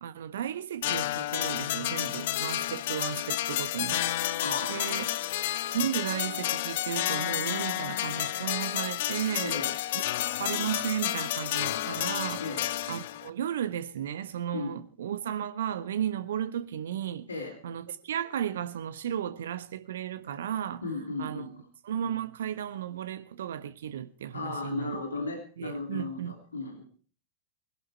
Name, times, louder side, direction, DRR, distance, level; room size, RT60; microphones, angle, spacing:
voice 1, 0.0-4.0 4.7-5.1 5.7-9.5 9.9-10.0 10.4-12.5 12.9-17.3 17.6-20.8 21.2-21.5 21.8-25.0 25.6-26.3, right 9 dB, 60° right, 1.2 m, -34 dB
sound 1, 0.8-13.3, left 13 dB, 55° left, 0.9 m, -31 dB
voice 2, 4.4-5.1 9.4-9.7 12.4-12.6 14.5-14.7 17.3-17.5 20.8-21.6 24.3-26.8, left 3 dB, 75° left, 3.3 m, -35 dB
21.0 x 11.5 x 4.5 m
figure-of-eight pair, 90°, 0 cm